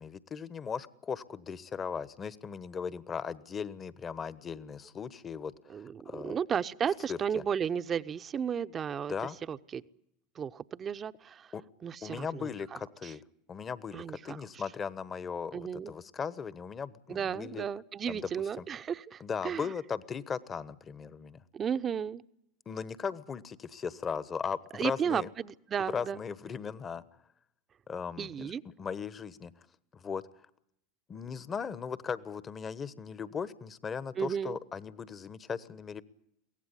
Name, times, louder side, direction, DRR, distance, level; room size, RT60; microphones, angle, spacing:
voice 1, 0.0-5.5 6.1-6.4 7.1-7.4 9.1-9.4 11.5-11.6 12.0-13.2 13.5-17.6 18.1-18.2 18.6-18.7 19.2-21.4 22.7-25.3 25.9-27.0 27.9-29.5 29.9-30.2 31.1-36.0, left 6 dB, 30° left, 17 dB, 1.2 m, -38 dB
voice 2, 5.7-9.8 10.4-11.5 11.8-13.1 13.9-14.6 15.5-15.9 17.1-19.7 21.5-22.2 24.7-26.2 28.2-28.6 34.2-34.6, right 7 dB, 30° right, 13 dB, 0.8 m, -34 dB
23.5 x 17.5 x 10.0 m, 0.80 s
hypercardioid pair, 85°, 0 cm